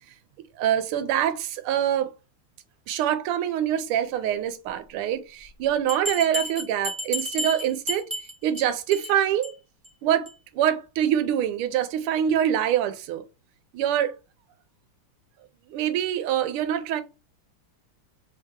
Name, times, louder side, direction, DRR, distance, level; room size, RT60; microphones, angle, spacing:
voice 1, 0.6-2.1 2.9-8.1 8.4-9.5 10.0-10.3 10.5-13.3 13.7-14.1 15.7-17.0, right 10 dB, 90° right, 1.5 m, -25 dB
Bell, 5.9-8.6 8.9-9.1 9.4-9.5 9.8-9.9 10.3-10.4, equal, 10° right, 0.8 m, -31 dB
3.4 x 2.8 x 3.5 m
omnidirectional pair, 2.3 m